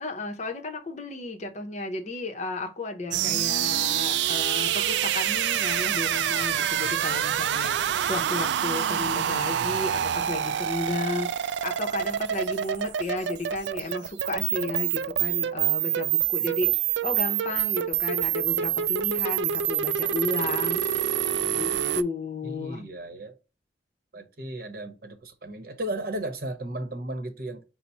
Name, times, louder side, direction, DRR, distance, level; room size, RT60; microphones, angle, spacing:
voice 1, 0.0-16.8 17.0-20.8 21.3-22.8, left 2 dB, 40° left, 0.7 m, -33 dB
sound 1, 3.1-22.0, right 10 dB, 80° right, 0.3 m, -26 dB
voice 2, 22.4-23.4 24.1-27.6, right 1 dB, 55° right, 0.9 m, -35 dB
5.7 x 2.1 x 4.0 m
head